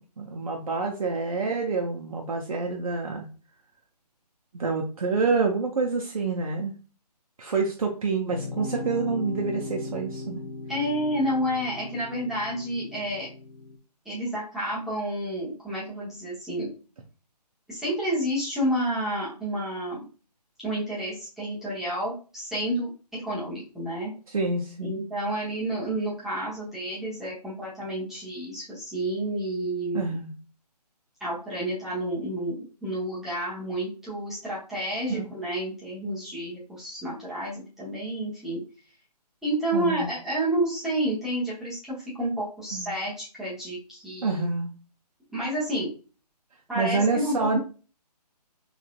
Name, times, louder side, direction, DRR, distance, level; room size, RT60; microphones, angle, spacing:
voice 1, 0.2-3.3 4.5-6.7 7.4-10.4 24.3-25.0 29.9-30.3 35.1-35.3 39.7-40.1 42.7-42.9 44.2-44.7 46.8-47.6, right 4 dB, 55° right, 1 dB, 0.7 m, -27 dB
sound 1, 8.3-13.8, left 2 dB, 75° left, 1.1 m, -37 dB
voice 2, 10.7-13.3 14.0-16.7 17.7-20.0 20.6-24.1 24.8-30.1 31.2-38.6 39.4-44.4 45.3-45.9 46.7-47.6, right 1 dB, ahead, -10 dB, 0.9 m, -30 dB
3.8 x 3.2 x 2.4 m, 0.35 s
figure-of-eight pair, 145°, 21 cm